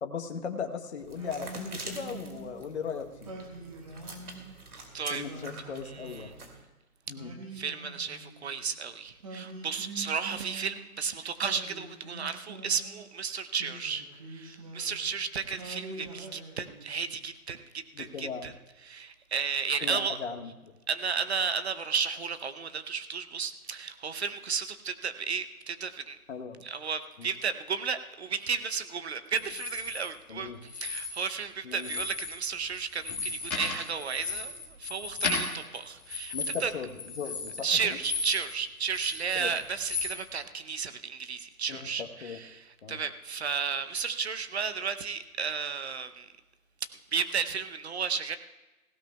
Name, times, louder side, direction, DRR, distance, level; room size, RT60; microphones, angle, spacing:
voice 1, 0.0-3.3 5.1-6.3 7.1-7.3 17.9-18.5 19.8-20.7 26.3-26.6 27.2-27.3 30.3-30.6 31.6-31.9 36.3-38.0 39.3-39.5 41.7-42.4 42.8-43.0, left 6 dB, 45° left, 4 dB, 1.1 m, -38 dB
sound 1, 1.0-6.6, right 3 dB, 75° right, 2.5 m, -46 dB
Singing, 1.1-2.6 3.2-4.6 5.2-6.5 7.1-8.7 9.2-11.0 11.4-13.0 13.5-15.2 15.6-17.2, right 2 dB, 25° right, 1.0 m, -45 dB
voice 2, 7.5-14.0 14.3-18.5 18.8-20.2 20.9-26.2 26.6-36.3 36.6-36.7 37.6-46.3 47.1-48.4, right 6 dB, 45° right, 11 dB, 0.7 m, -33 dB
sound 2, 29.4-30.0 30.6-31.4 31.7-32.4 32.7-38.5 38.8-40.1, left 4 dB, 5° left, 1.5 m, -35 dB
17.5 x 16.5 x 2.3 m, 1.1 s
hypercardioid pair, 165°, 44 cm